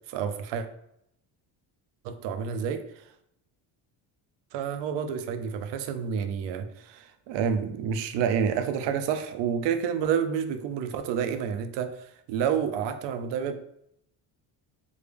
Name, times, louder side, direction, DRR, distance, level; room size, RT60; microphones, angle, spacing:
voice 1, 0.1-0.7 2.0-3.0 4.5-13.6, right 7 dB, 65° right, 9 dB, 0.5 m, -29 dB
3.4 x 2.2 x 3.2 m, 0.76 s
cardioid pair, 140°, 46 cm